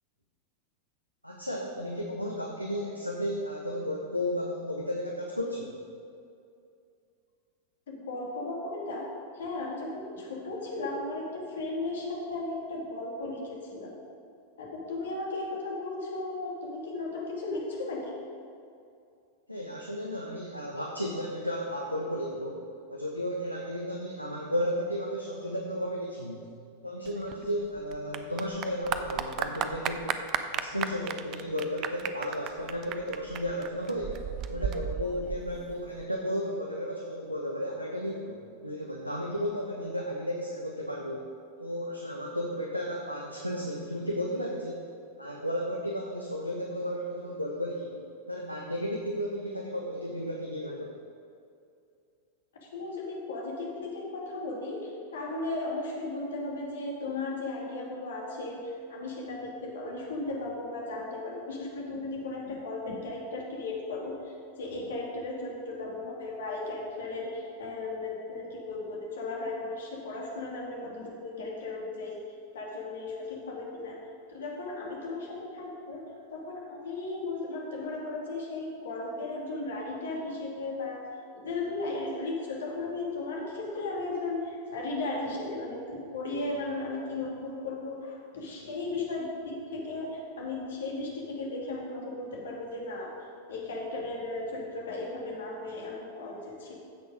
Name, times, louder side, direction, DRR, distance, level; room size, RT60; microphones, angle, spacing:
voice 1, 1.2-5.7 19.5-22.6 22.9-26.5 26.8-30.2 30.5-34.2 34.5-41.3 41.6-44.9 45.2-48.0 48.3-51.0, equal, 90° left, -1 dB, 1.0 m, -33 dB
voice 2, 7.9-9.1 9.3-13.9 14.6-18.2 52.6-72.2 72.5-74.0 74.3-76.0 76.3-81.0 81.3-96.8, left 2 dB, 60° left, -2 dB, 2.5 m, -36 dB
Clapping / Applause, 27.0-36.0, right 9 dB, 35° right, 0.6 m, -35 dB
15.0 x 6.4 x 5.1 m, 2.5 s
figure-of-eight pair, 90°, 0 cm